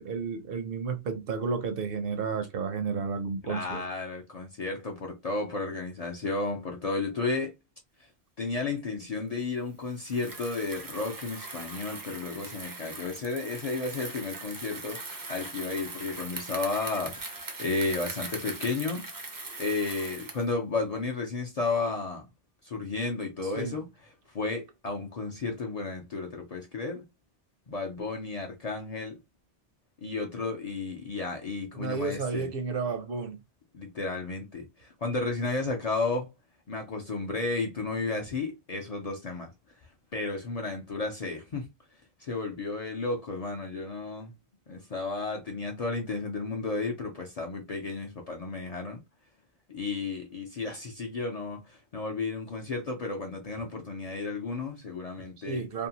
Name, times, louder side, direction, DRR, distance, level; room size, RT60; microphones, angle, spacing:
voice 1, 0.0-3.8 23.4-23.8 31.7-33.4 55.4-55.9, right 5 dB, 65° right, 0.8 m, -32 dB
voice 2, 3.4-7.6 8.0-8.1 8.4-19.1 19.6-22.2 22.6-23.9 24.3-27.0 27.7-29.2 30.0-32.5 33.7-36.3 36.7-39.5 40.1-41.7 42.2-44.3 44.7-49.0 49.7-55.6, left 3 dB, 50° left, 0.5 m, -33 dB
Bicycle, 10.0-20.5, right 3 dB, 35° right, 0.3 m, -40 dB
2.6 x 2.1 x 2.7 m
omnidirectional pair, 1.1 m